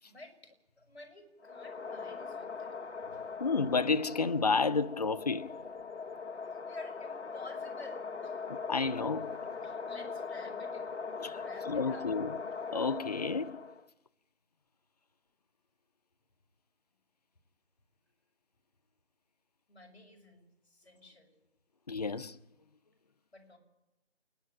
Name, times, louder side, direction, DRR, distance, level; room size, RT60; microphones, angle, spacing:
voice 1, 0.0-2.7 3.0-3.2 6.3-8.4 9.6-10.9 11.4-12.1 19.7-21.4 23.3-23.6, left 1 dB, 65° left, 6.3 m, -53 dB
sound 1, 1.4-13.9, left 5 dB, 90° left, 1.2 m, -41 dB
voice 2, 3.4-5.5 8.7-9.4 11.2-12.4 12.7-13.6 21.9-22.4, left 4 dB, 35° left, 0.6 m, -31 dB
29.0 x 11.0 x 8.9 m
figure-of-eight pair, 160°, 34 cm